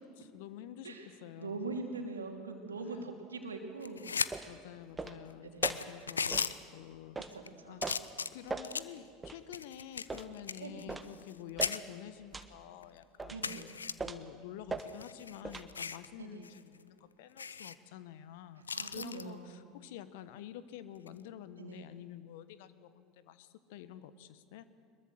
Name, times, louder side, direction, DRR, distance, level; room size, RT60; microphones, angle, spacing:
voice 1, 0.2-1.8 2.7-3.1 4.5-7.2 7.6-13.7 14.0-24.7, left 11 dB, 65° left, 13 dB, 1.2 m, -49 dB
voice 2, 1.4-4.0 5.4-5.7 7.3-7.9 10.6-10.8 13.3-13.7 16.2-16.4 18.7-19.6 21.6-21.8, right 3 dB, 85° right, 3 dB, 2.8 m, -42 dB
sound 1, 3.8-4.3 4.7-4.8 5.3-5.4 5.6-6.5 7.2-7.5 7.8-9.0 9.5-11.4 11.6-11.8 12.4-12.5 12.8-12.9 13.4-13.9 14.8-16.1 16.4-16.6 16.9-17.0 17.4-17.8 18.7-19.2 21.0-21.2, left 5 dB, 85° left, 0.6 m, -36 dB
sound 2, 4.3-4.5 5.0-5.2 5.6-5.8 6.3-6.5 7.2-7.3 7.8-8.0 8.5-8.7 9.2-9.4 10.1-10.3 10.9-11.1 11.6-11.8 12.3-12.5 13.2-13.4 14.0-14.3 14.7-14.9 15.4-15.7, right 3 dB, 15° right, 1.5 m, -39 dB
23.5 x 22.0 x 7.7 m, 2.2 s
figure-of-eight pair, 75°, 0 cm